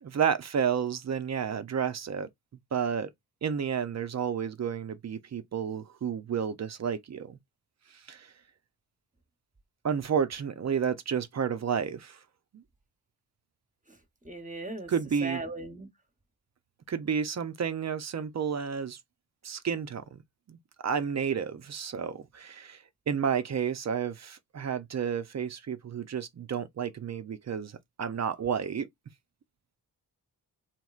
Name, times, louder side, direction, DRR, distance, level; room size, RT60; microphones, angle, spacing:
voice 1, 0.0-2.3 2.7-3.1 3.4-7.4 8.1-8.3 9.8-12.2 12.5-12.6 14.9-15.4 16.9-19.0 19.4-20.2 20.5-20.6 20.8-28.9, right 7 dB, 40° right, 0.5 m, -31 dB
voice 2, 14.2-14.9 15.2-15.9, right 2 dB, 20° right, 1.0 m, -37 dB
3.0 x 2.8 x 2.4 m
supercardioid pair, 45°, 42 cm